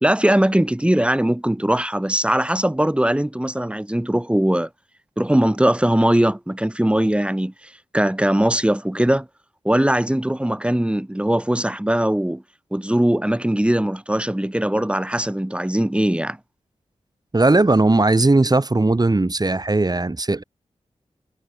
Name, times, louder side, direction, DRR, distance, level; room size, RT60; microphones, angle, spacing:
voice 1, 0.0-4.7 5.2-7.5 7.9-9.3 9.6-12.4 12.7-16.4, right 1 dB, 10° right, 3.2 m, -20 dB
voice 2, 17.3-20.4, right 2 dB, 35° right, 4.8 m, -18 dB
cardioid pair, 55°, 12 cm